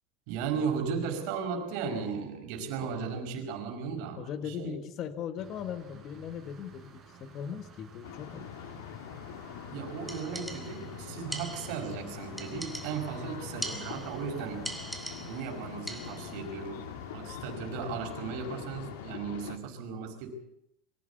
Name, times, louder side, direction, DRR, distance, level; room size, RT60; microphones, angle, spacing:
voice 1, 0.3-4.8 9.7-14.8 15.2-20.3, right 6 dB, 55° right, 5 dB, 4.9 m, -36 dB
voice 2, 4.2-8.5 13.5-13.6, left 8 dB, 35° left, 11 dB, 1.4 m, -39 dB
sound 1, 5.4-19.1, right 5 dB, 20° right, 4.6 m, -51 dB
sound 2, 8.0-19.6, left 9 dB, 85° left, 1.8 m, -43 dB
sound 3, 10.1-10.9 11.3-11.9 12.4-13.2 13.6-14.3 14.6-15.5 15.9-16.4, right 1 dB, ahead, 1.8 m, -41 dB
23.0 x 15.5 x 8.3 m, 0.79 s
supercardioid pair, 165°, 0 cm